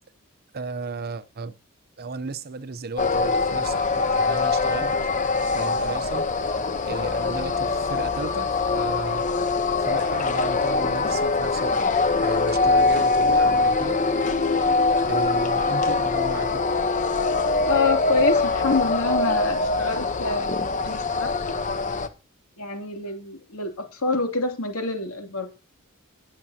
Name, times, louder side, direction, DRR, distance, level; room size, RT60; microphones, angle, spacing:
voice 1, 0.5-1.5 2.0-4.9 5.4-6.3 6.9-9.3 9.8-11.8 12.2-14.0 15.1-16.6, right 4 dB, 45° right, 0.7 m, -34 dB
sound 1, 3.0-22.1, left 3 dB, 35° left, 0.9 m, -23 dB
voice 2, 17.6-21.3 22.6-25.5, left 3 dB, 75° left, 2.9 m, -27 dB
21.0 x 7.5 x 2.9 m
head